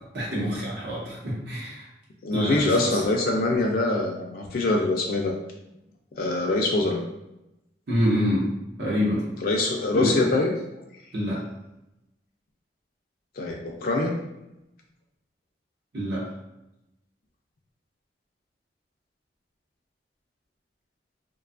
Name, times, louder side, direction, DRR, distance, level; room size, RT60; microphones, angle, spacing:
voice 1, 0.0-1.9 2.3-3.0 7.9-8.5 8.8-9.3 9.9-10.2 11.1-11.4 15.9-16.3, equal, 65° right, -5 dB, 0.8 m, -26 dB
voice 2, 2.2-5.3 6.2-7.0 9.4-10.5 13.4-14.2, left 2 dB, 55° left, 0 dB, 0.3 m, -24 dB
2.6 x 2.3 x 2.4 m, 0.91 s
head